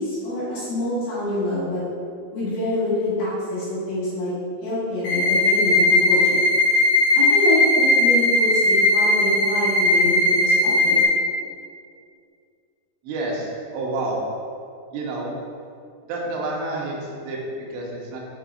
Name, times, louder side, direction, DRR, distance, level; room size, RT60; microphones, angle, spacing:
voice 1, 0.0-1.8 2.3-4.3 4.6-6.5 7.2-11.0, left 1 dB, 60° left, -10 dB, 3.1 m, -26 dB
sound 1, 5.0-11.0, left 2 dB, 85° left, 1.6 m, -18 dB
voice 2, 13.0-14.2 14.9-15.3 16.0-18.2, right 2 dB, 85° right, -3 dB, 3.4 m, -29 dB
8.4 x 5.6 x 2.5 m, 2.2 s
omnidirectional pair, 5.4 m